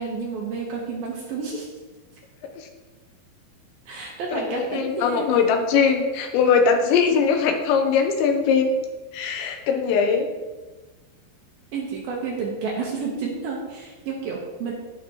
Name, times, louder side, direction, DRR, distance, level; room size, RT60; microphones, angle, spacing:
voice 1, 0.0-1.7 3.9-5.3 11.7-14.7, right 4 dB, 70° right, -2 dB, 2.5 m, -30 dB
voice 2, 4.3-8.7 9.1-10.3, left 6 dB, 80° left, 4 dB, 3.0 m, -21 dB
16.5 x 5.8 x 3.0 m, 1.2 s
omnidirectional pair, 5.4 m